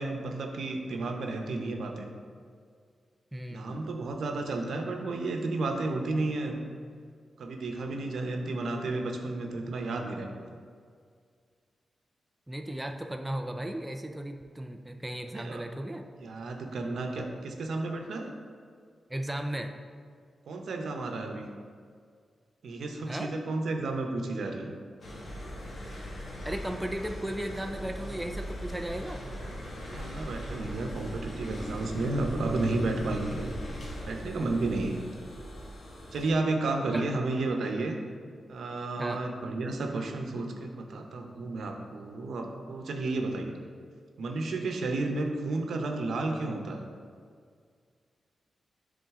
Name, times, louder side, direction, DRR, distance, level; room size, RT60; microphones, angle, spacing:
voice 1, 0.0-2.1 3.5-6.6 7.4-10.3 15.3-15.6 16.2-18.3 20.5-21.5 22.6-24.7 29.8-33.5 34.1-35.1 36.1-38.0 38.5-43.6 44.2-46.8, right 2 dB, 75° right, 3 dB, 0.8 m, -32 dB
voice 2, 3.3-3.9 12.5-16.1 19.1-19.7 23.1-23.3 26.4-29.3 36.9-37.2 39.0-39.2, right 1 dB, 10° right, 3 dB, 0.4 m, -36 dB
sound 1, 25.0-36.3, equal, 55° left, 1.5 m, -39 dB
10.0 x 3.8 x 3.6 m, 2.1 s
wide cardioid pair, 125°, 0 cm